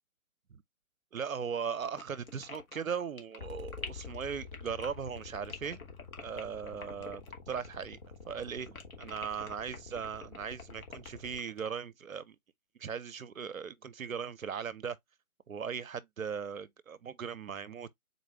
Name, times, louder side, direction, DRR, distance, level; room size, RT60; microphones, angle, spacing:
voice 1, 1.1-5.8 6.2-8.0 8.3-12.4 12.8-15.0 15.5-17.9, right 7 dB, 65° right, 0.6 m, -38 dB
sound 1, 1.9-8.1 8.3-11.8, left 4 dB, 70° left, 1.2 m, -46 dB
sound 2, 3.4-11.4, left 5 dB, 35° left, 0.9 m, -48 dB
4.0 x 2.3 x 4.5 m
figure-of-eight pair, 145°, 44 cm